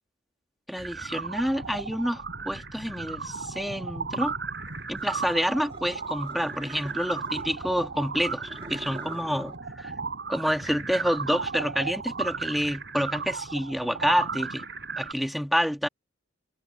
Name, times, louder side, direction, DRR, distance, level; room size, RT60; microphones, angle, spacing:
voice 1, 0.7-4.3 4.9-9.9 10.3-14.6 15.0-15.9, equal, ahead, 1.6 m, -28 dB
sound 1, 0.8-15.1, right 4 dB, 60° right, 5.3 m, -35 dB
sound 2, 5.0-7.8 8.3-9.6, right 2 dB, 30° right, 2.8 m, -45 dB
head